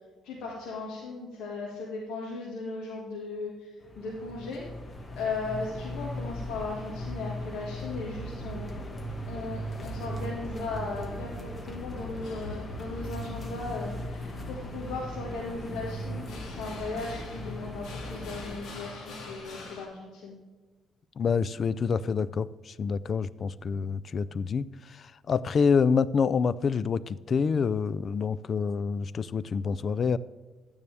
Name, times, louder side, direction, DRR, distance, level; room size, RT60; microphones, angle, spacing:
voice 1, 0.2-3.7 4.0-4.6 5.2-8.7 9.3-13.9 14.5-20.4, left 3 dB, 90° left, -3 dB, 1.8 m, -37 dB
sound 1, 3.8-18.6, equal, 30° left, 1.6 m, -38 dB
sound 2, 12.1-19.9, left 3 dB, 75° left, 2.5 m, -47 dB
voice 2, 21.2-24.7 25.3-30.2, left 5 dB, 50° left, 18 dB, 0.4 m, -27 dB
12.0 x 9.5 x 3.4 m, 1.3 s
cardioid pair, 90°, 0 cm